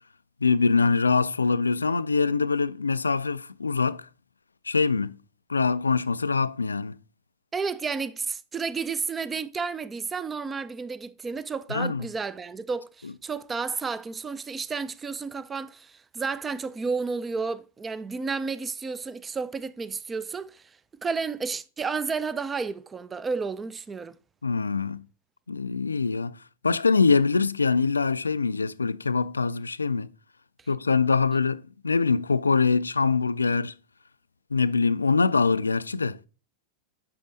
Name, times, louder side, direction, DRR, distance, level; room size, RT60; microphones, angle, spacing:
voice 1, 0.4-4.1 4.7-5.1 5.5-7.0 11.7-12.0 24.4-25.0 25.5-26.4 26.6-30.1 30.7-33.7 34.5-36.2, left 4 dB, 75° left, 0.3 m, -24 dB
voice 2, 7.5-20.6 21.0-24.2, right 5 dB, 15° right, 0.4 m, -31 dB
8.5 x 6.0 x 3.8 m
figure-of-eight pair, 90°, 0 cm